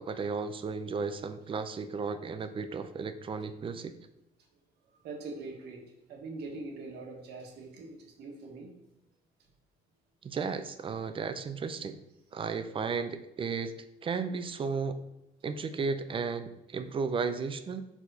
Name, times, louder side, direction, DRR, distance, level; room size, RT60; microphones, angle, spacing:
voice 1, 0.0-3.9 10.2-12.0 12.3-13.7 14.0-15.0 15.4-17.8, right 5 dB, 30° right, 10 dB, 0.5 m, -34 dB
voice 2, 5.0-8.8, right 3 dB, 75° right, 1 dB, 1.4 m, -43 dB
4.7 x 4.2 x 5.5 m, 0.90 s
cardioid pair, 110°, 17 cm